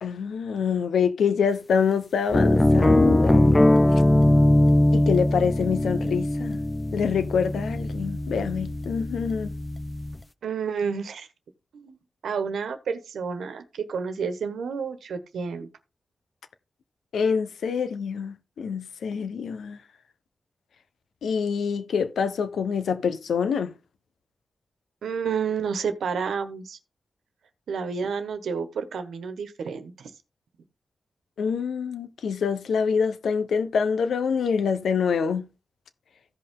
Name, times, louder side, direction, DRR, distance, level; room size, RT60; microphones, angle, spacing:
voice 1, 0.0-3.5 4.9-6.6 6.9-9.5 17.1-19.8 21.2-23.7 31.4-35.5, left 6 dB, 90° left, 1.0 m, -26 dB
sound 1, 2.3-10.2, left 1 dB, 20° left, 0.8 m, -21 dB
voice 2, 10.4-11.3 11.7-12.0 12.2-15.7 25.0-26.8 27.7-30.1, right 6 dB, 90° right, 1.3 m, -30 dB
15.0 x 5.5 x 3.8 m
cardioid pair, 55°, 0 cm